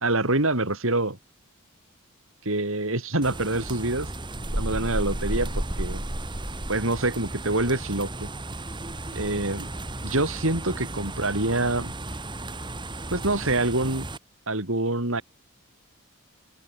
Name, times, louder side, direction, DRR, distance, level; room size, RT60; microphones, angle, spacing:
voice 1, 0.0-1.2 2.5-4.1 4.5-6.0 6.7-8.3 9.1-9.7 10.0-11.9 13.1-14.0 14.5-15.2, right 2 dB, 65° right, 3.7 m, -26 dB
sound 1, 3.2-14.2, right 1 dB, 20° right, 2.0 m, -33 dB
open air
head